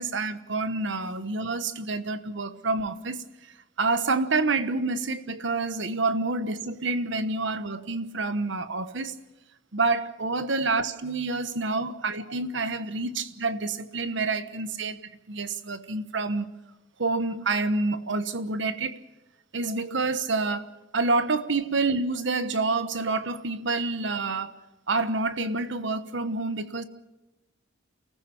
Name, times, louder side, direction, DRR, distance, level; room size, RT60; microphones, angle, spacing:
voice 1, 0.0-3.2 3.8-9.2 9.7-14.9 15.3-16.5 17.0-19.0 19.5-20.7 20.9-24.5 24.9-26.8, right 3 dB, 70° right, 1.2 m, -28 dB
29.5 x 15.0 x 7.1 m
head